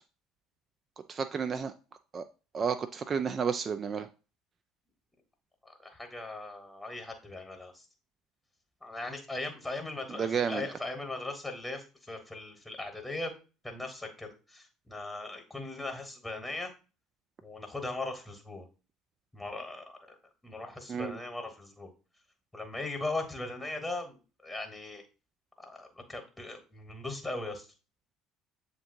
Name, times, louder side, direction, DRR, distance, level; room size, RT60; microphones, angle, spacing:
voice 1, 1.1-1.7 2.1-2.2 2.5-4.1 10.2-10.7 20.9-21.1, right 6 dB, 35° right, 0.3 m, -31 dB
voice 2, 5.6-7.8 8.8-13.3 13.6-16.7 17.4-18.7 19.3-20.1 20.4-21.9 22.5-25.0 25.6-27.7, left 2 dB, 10° left, 1.2 m, -39 dB
7.6 x 2.6 x 2.6 m
figure-of-eight pair, 60°, 0 cm